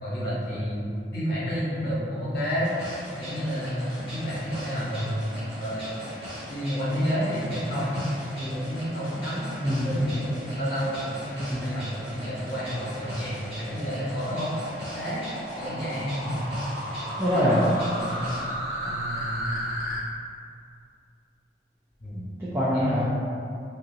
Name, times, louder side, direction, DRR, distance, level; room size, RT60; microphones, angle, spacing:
voice 1, 0.0-2.7 3.2-5.9 6.5-14.5 14.9-15.2 15.6-16.4 18.0-19.6 22.0-22.2 22.7-22.9, equal, 60° left, -9 dB, 1.0 m, -30 dB
sound 1, 2.6-18.4, equal, 30° right, 1.1 m, -39 dB
sound 2, 12.2-20.0, equal, 50° right, 0.7 m, -35 dB
voice 2, 17.2-17.7 22.4-23.0, equal, 15° right, -10 dB, 0.4 m, -23 dB
2.9 x 2.5 x 2.6 m, 2.4 s
head